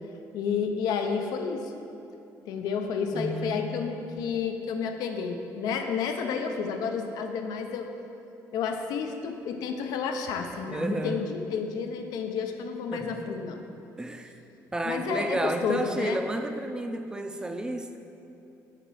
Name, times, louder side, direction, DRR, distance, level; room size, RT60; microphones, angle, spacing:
voice 1, 0.3-1.7 2.5-7.9 8.5-13.6 14.9-16.2, left 6 dB, 80° left, 5 dB, 0.6 m, -31 dB
voice 2, 3.1-3.7 10.7-11.3 12.9-13.3 14.0-14.3 14.7-18.0, right 1 dB, 10° right, 6 dB, 0.4 m, -31 dB
6.6 x 4.1 x 6.2 m, 2.7 s
cardioid pair, 125°, 7 cm